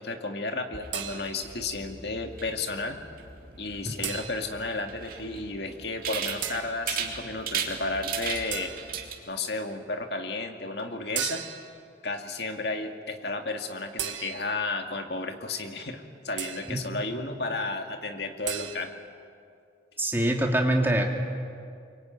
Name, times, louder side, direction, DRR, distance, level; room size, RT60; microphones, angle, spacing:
voice 1, 0.0-3.0 3.6-8.7 9.3-11.4 12.0-18.9, left 3 dB, 60° left, 5 dB, 2.2 m, -33 dB
sound 1, 0.7-9.1, right 6 dB, 50° right, 2.7 m, -37 dB
sound 2, 0.9-1.6 4.0-4.7 6.4-6.8 8.5-9.1 11.2-11.8 14.0-14.7 16.4-16.9 18.5-18.8, right 10 dB, 85° right, 1.7 m, -35 dB
voice 2, 16.7-17.0 20.0-21.1, right 1 dB, 10° right, 1 dB, 2.6 m, -25 dB
24.5 x 23.5 x 9.3 m, 2.4 s
head